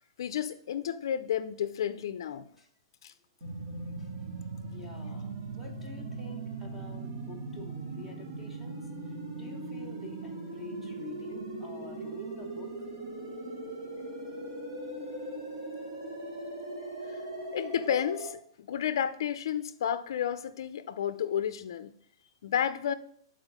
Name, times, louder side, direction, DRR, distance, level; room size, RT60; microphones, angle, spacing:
voice 1, 0.2-2.5 3.0-3.1 17.5-21.9 22.4-22.9, left 9 dB, 60° left, 0.5 m, -31 dB
sound 1, 3.4-18.3, right 2 dB, 45° right, 2.1 m, -39 dB
voice 2, 4.7-12.9 15.1-15.4 16.1-16.2, left 3 dB, ahead, 0.9 m, -49 dB
8.3 x 4.0 x 4.9 m
hypercardioid pair, 175°, 3 cm